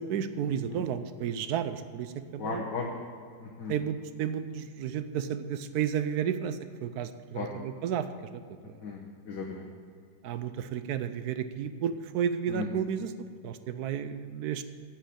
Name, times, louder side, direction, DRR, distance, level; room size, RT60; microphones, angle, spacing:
voice 1, 0.0-2.6 3.7-8.1 8.3-8.7 10.2-13.1 13.4-14.6, right 8 dB, 70° right, 11 dB, 1.0 m, -32 dB
voice 2, 2.4-2.9 3.4-3.7 7.3-7.6 8.8-9.7 12.5-12.7, left 4 dB, 65° left, -2 dB, 1.8 m, -36 dB
8.8 x 7.8 x 8.5 m, 2.3 s
omnidirectional pair, 2.0 m